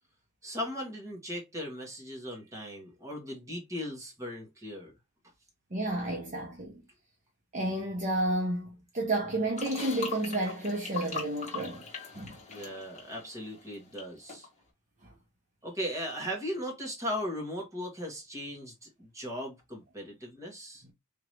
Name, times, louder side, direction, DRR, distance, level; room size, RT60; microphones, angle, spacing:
voice 1, 0.4-4.9 12.5-14.5 15.6-20.8, equal, 15° right, 1.6 m, -38 dB
voice 2, 5.7-6.7 7.5-11.9 12.1-12.3, right 1 dB, 35° right, 0.8 m, -31 dB
sound 1, 9.6-14.0 14.3-14.5, left 5 dB, 30° left, 1.3 m, -41 dB
3.6 x 2.9 x 3.1 m
head